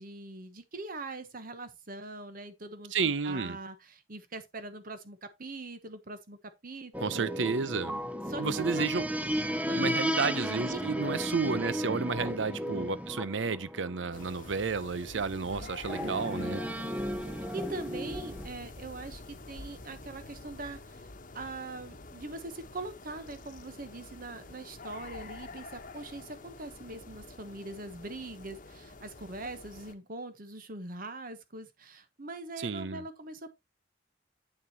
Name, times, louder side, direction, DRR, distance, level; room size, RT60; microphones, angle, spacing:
voice 1, 0.0-7.3 8.3-8.9 9.7-9.9 10.7-11.0 12.1-12.4 15.1-15.7 17.5-21.1 21.3-33.5, right 2 dB, 50° right, 1.1 m, -42 dB
voice 2, 2.9-3.6 7.0-7.9 8.4-9.1 9.8-16.6 32.6-33.0, right 5 dB, 85° right, 0.7 m, -31 dB
sound 1, 6.9-14.8 15.9-18.5, equal, 10° right, 0.7 m, -34 dB
sound 2, 14.1-29.9, left 3 dB, 45° left, 1.1 m, -47 dB
8.9 x 7.1 x 2.9 m
head